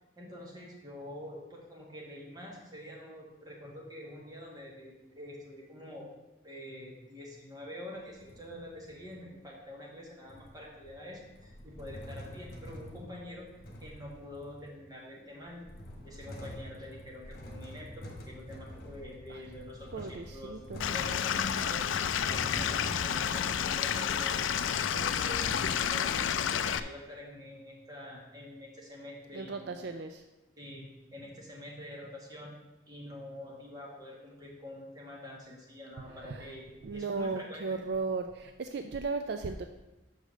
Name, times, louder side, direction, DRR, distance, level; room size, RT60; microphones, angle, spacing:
voice 1, 0.2-6.1 6.4-13.5 13.8-15.7 16.0-25.5 25.8-29.9 30.6-32.5 32.9-37.7, left 1 dB, 20° right, -3 dB, 1.7 m, -46 dB
sound 1, 8.0-9.3 10.3-14.9 15.4-25.9, equal, 50° left, 1.4 m, -46 dB
voice 2, 19.9-20.8 29.3-30.2 36.2-36.5 36.8-39.7, right 4 dB, 60° right, 7 dB, 0.4 m, -36 dB
Stream / Liquid, 20.8-26.8, left 8 dB, 85° left, 0.4 m, -30 dB
6.4 x 4.9 x 6.4 m, 1.0 s
head